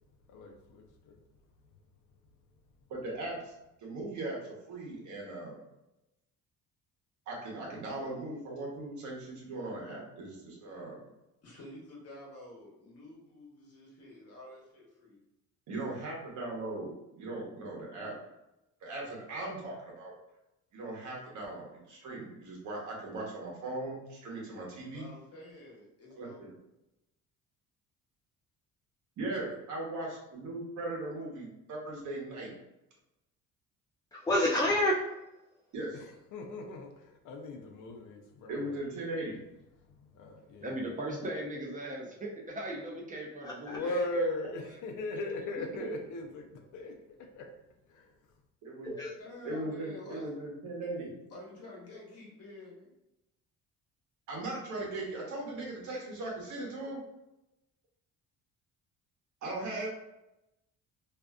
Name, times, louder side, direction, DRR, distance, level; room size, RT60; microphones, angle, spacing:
voice 1, 0.3-1.2 36.0-38.7 40.1-40.9 43.6-47.5 47.9-48.1, left 1 dB, 70° left, 0.6 m, -38 dB
voice 2, 2.9-3.5 3.8-5.6 7.3-11.1 15.7-18.2 18.8-20.1 20.7-25.1 26.2-26.5 29.2-32.5 35.7-36.0 38.5-39.4 48.6-48.9 49.4-51.1 54.3-57.0 59.4-59.9, right 2 dB, 70° right, 1.0 m, -39 dB
voice 3, 11.4-15.2 24.9-26.4 49.2-50.3 51.0-52.9, left 1 dB, 50° left, 1.1 m, -49 dB
voice 4, 34.1-34.9 43.4-43.8 48.8-49.1, left 1 dB, 10° left, 0.4 m, -28 dB
voice 5, 40.6-44.3 45.8-46.0, right 1 dB, 25° right, 0.6 m, -38 dB
2.6 x 2.4 x 2.3 m
cardioid pair, 95°, 32 cm